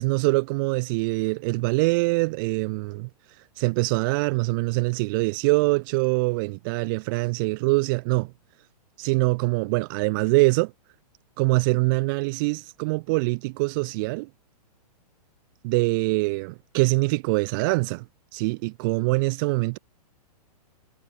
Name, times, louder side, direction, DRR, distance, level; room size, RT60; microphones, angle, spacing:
voice 1, 0.0-3.1 3.6-8.3 9.0-10.7 11.4-14.3 15.6-18.1 18.3-19.8, right 26 dB, 30° right, 1.8 m, -24 dB
hypercardioid pair, 165°, 20 cm